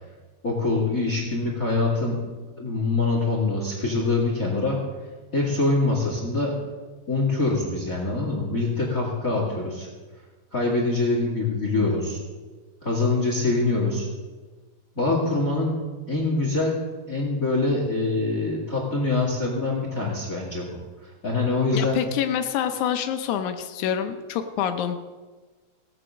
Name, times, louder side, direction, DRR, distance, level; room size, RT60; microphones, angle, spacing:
voice 1, 0.4-2.2 2.6-4.8 5.3-6.5 7.1-9.9 10.5-12.2 12.8-14.1 15.0-15.7 16.1-16.8 17.1-20.7 21.2-22.0, left 3 dB, 30° left, -1 dB, 2.0 m, -24 dB
voice 2, 21.7-25.0, left 9 dB, 90° left, 7 dB, 1.7 m, -26 dB
17.0 x 8.9 x 6.3 m, 1.3 s
omnidirectional pair, 4.4 m